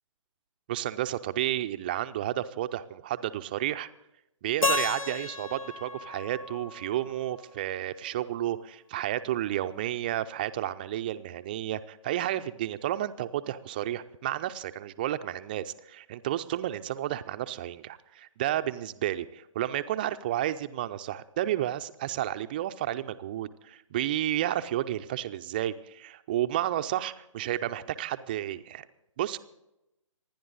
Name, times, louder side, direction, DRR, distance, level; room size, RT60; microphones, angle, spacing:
voice 1, 0.7-3.9 4.4-28.9 29.2-29.4, right 12 dB, 15° right, 11 dB, 0.4 m, -31 dB
Keyboard (musical), 4.6-7.6, left 2 dB, 85° left, 1.2 m, -32 dB
27.0 x 10.5 x 3.9 m, 0.89 s
figure-of-eight pair, 145°, 17 cm